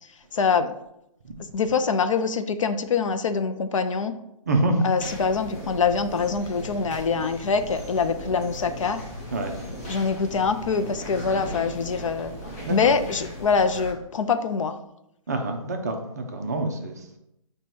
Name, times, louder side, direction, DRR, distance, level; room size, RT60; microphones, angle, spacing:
voice 1, 0.3-0.7 1.5-4.1 4.8-9.0 9.9-12.3 12.7-14.8, left 5 dB, 60° left, 9 dB, 0.4 m, -24 dB
voice 2, 4.5-4.9 9.3-9.6 11.3-11.5 12.7-12.9 15.3-17.2, right 2 dB, 30° right, 3 dB, 0.4 m, -26 dB
sound 1, 5.0-13.9, equal, 25° left, 0.7 m, -38 dB
4.6 x 2.2 x 4.2 m, 0.80 s
hypercardioid pair, 165°, 19 cm